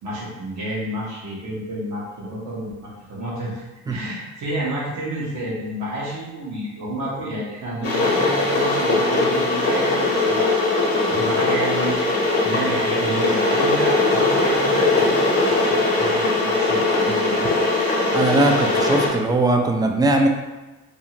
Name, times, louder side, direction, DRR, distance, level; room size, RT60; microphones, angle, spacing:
voice 1, 0.0-3.5 3.9-10.8 11.1-17.6, right 1 dB, 70° right, -6 dB, 1.0 m, -30 dB
Water / Boiling, 7.8-19.1, left 2 dB, 50° left, 0.9 m, -20 dB
voice 2, 18.1-20.3, right 2 dB, 15° right, 3 dB, 0.3 m, -19 dB
2.6 x 2.4 x 2.8 m, 1.1 s
cardioid pair, 90°, 30 cm